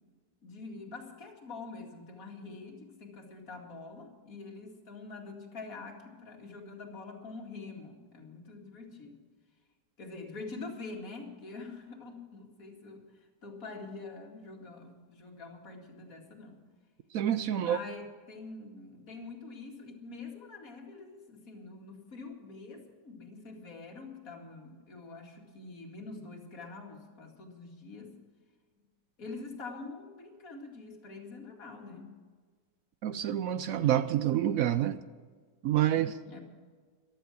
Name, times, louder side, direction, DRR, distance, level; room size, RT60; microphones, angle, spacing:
voice 1, 0.4-9.2 10.0-13.0 13.4-16.6 17.6-28.1 29.2-32.2 36.3-36.4, left 3 dB, 50° left, 1 dB, 2.6 m, -45 dB
voice 2, 17.1-17.8 33.0-35.0 35.6-36.2, right 11 dB, 70° right, 13 dB, 0.8 m, -28 dB
14.5 x 12.0 x 6.2 m, 1.6 s
omnidirectional pair, 1.9 m